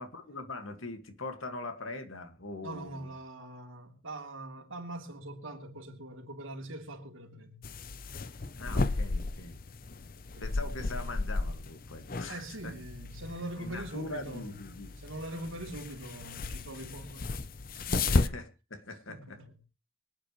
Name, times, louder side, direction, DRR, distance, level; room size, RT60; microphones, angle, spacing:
voice 1, 0.0-3.1 8.6-9.6 10.4-12.7 13.6-14.9 18.0-19.4, left 2 dB, 80° left, 2.0 m, -42 dB
voice 2, 2.6-7.6 10.3-10.5 12.3-14.5 15.0-17.4 17.7-18.3 19.1-19.5, right 1 dB, 80° right, 3.2 m, -42 dB
sound 1, 7.6-18.3, left 3 dB, 45° left, 0.7 m, -34 dB
24.0 x 9.3 x 3.2 m
head